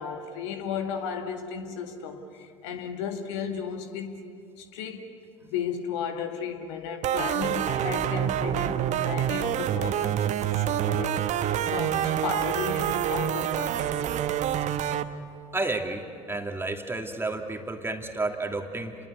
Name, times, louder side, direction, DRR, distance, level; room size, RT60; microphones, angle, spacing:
voice 1, 0.0-4.2 4.6-14.1, left 6 dB, 70° left, 2.2 m, -34 dB
sound 1, 7.0-15.0, right 10 dB, 50° right, 1.1 m, -27 dB
voice 2, 15.5-19.0, right 2 dB, 15° right, 2.7 m, -31 dB
29.5 x 21.5 x 8.3 m
figure-of-eight pair, 65°, 16 cm